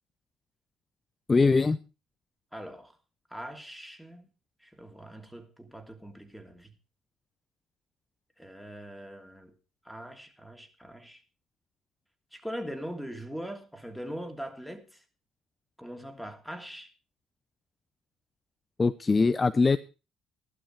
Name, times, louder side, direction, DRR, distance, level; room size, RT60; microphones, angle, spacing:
voice 1, 1.3-1.8 18.8-19.8, left 4 dB, 25° left, 0.7 m, -22 dB
voice 2, 2.5-2.9 3.3-4.2 4.6-6.7 8.4-9.5 9.8-11.2 12.3-15.0 15.8-16.9, equal, ahead, 3.0 m, -41 dB
15.0 x 12.0 x 4.6 m
figure-of-eight pair, 50°, 0 cm